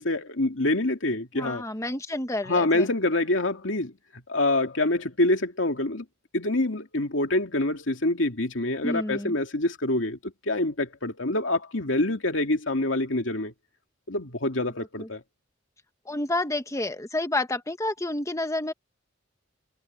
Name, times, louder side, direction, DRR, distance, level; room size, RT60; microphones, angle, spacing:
voice 1, 0.0-1.6 2.5-3.9 4.3-6.0 6.3-13.5 14.1-15.2, left 2 dB, 75° left, 2.6 m, -26 dB
voice 2, 1.3-2.9 8.8-9.4 15.0-15.1 16.0-18.7, left 2 dB, 15° left, 1.2 m, -29 dB
head